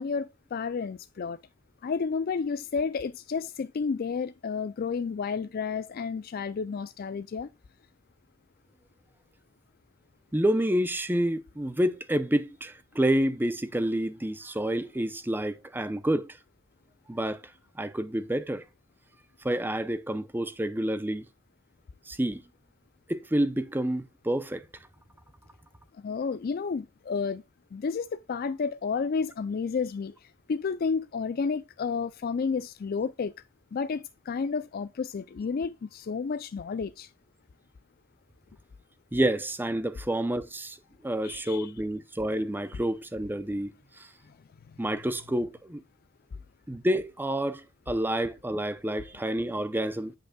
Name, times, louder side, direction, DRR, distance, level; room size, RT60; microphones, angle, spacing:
voice 1, 0.0-1.4 1.8-7.5 26.0-27.4 27.7-33.3 33.7-37.1 41.2-41.7, left 5 dB, 45° left, 0.3 m, -31 dB
voice 2, 10.3-16.4 17.1-17.4 17.8-18.6 19.4-21.3 22.1-22.4 23.1-24.6 39.1-40.8 41.0-44.1 44.8-45.8 46.7-50.1, right 1 dB, 10° right, 0.6 m, -28 dB
8.8 x 5.3 x 2.2 m
head